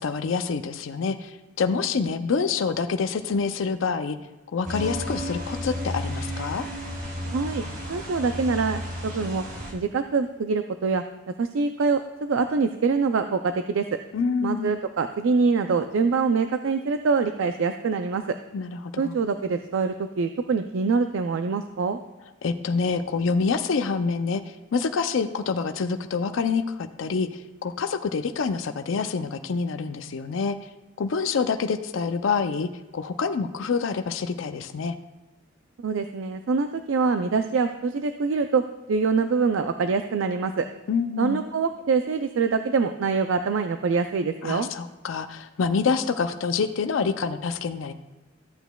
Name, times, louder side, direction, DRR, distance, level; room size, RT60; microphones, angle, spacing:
voice 1, 0.0-4.2 4.5-6.6 14.1-14.7 18.5-19.2 22.4-24.4 24.7-30.6 31.0-35.0 40.9-41.4 44.4-47.9, left 5 dB, 75° left, 9 dB, 0.5 m, -27 dB
sound 1, 4.7-9.7, equal, 45° right, 1.7 m, -33 dB
voice 2, 7.3-7.6 7.9-9.4 9.7-11.0 11.4-13.8 14.4-18.4 19.0-22.0 35.8-38.6 38.9-40.7 41.2-44.7, right 4 dB, 75° right, 8 dB, 0.4 m, -24 dB
14.0 x 8.0 x 2.3 m, 1.1 s
head